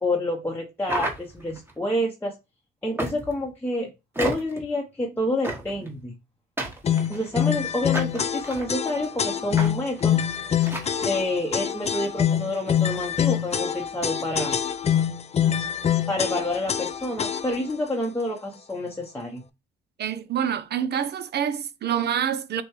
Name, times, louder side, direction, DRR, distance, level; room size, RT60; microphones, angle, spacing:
voice 1, 0.0-2.3 2.8-3.9 4.2-6.2 7.1-10.2 11.0-14.6 16.1-19.4, left 1 dB, 10° left, 0.8 m, -28 dB
sound 1, 0.8-1.7 3.0-3.5 4.2-4.6 5.4-5.9 6.6-7.4 7.9-8.7 9.6-9.7 10.0-10.1 10.6-10.9, right 1 dB, 10° right, 1.2 m, -31 dB
sound 2, 6.8-17.7, left 9 dB, 35° left, 0.4 m, -25 dB
voice 2, 20.0-22.6, right 9 dB, 55° right, 0.6 m, -27 dB
6.2 x 2.3 x 3.1 m
cardioid pair, 90°, 20 cm